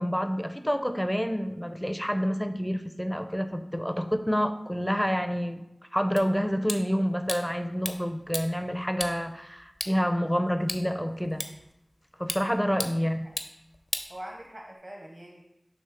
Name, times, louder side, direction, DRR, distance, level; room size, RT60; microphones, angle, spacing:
voice 1, 0.0-5.6 5.9-11.4 12.2-13.3, equal, 5° left, 8 dB, 0.5 m, -28 dB
sound 1, 6.2-14.8, left 1 dB, 50° left, 0.6 m, -39 dB
voice 2, 12.6-12.9 14.1-15.4, right 1 dB, 40° right, -1 dB, 0.9 m, -43 dB
6.4 x 3.1 x 5.8 m, 0.89 s
wide cardioid pair, 55°, 0 cm